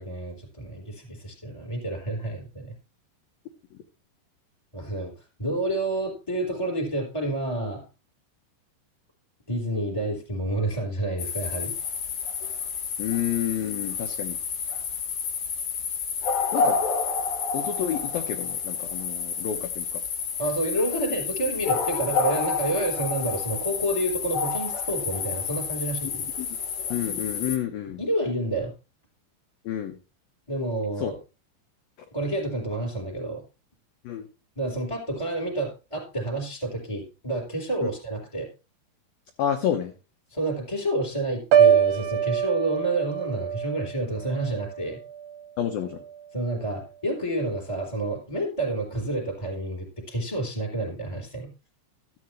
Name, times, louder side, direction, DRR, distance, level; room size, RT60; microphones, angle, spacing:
voice 1, 0.0-2.7 4.7-7.8 9.5-11.7 20.4-26.3 28.0-28.7 30.5-31.2 32.1-33.4 34.5-38.5 40.3-45.0 46.3-51.5, right 1 dB, 5° left, 1 dB, 3.3 m, -29 dB
sound 1, 11.2-27.6, left 6 dB, 60° left, 2.1 m, -29 dB
voice 2, 13.0-14.4 16.5-16.8 17.5-20.0 26.4-26.5 26.9-28.0 29.6-30.0 31.0-31.1 34.0-34.3 39.4-39.9 45.6-46.0, left 10 dB, 75° left, 6 dB, 2.1 m, -29 dB
Piano, 41.5-45.5 45.9-46.2, right 8 dB, 75° right, 2.5 m, -24 dB
13.5 x 9.8 x 3.2 m, 0.31 s
omnidirectional pair, 5.6 m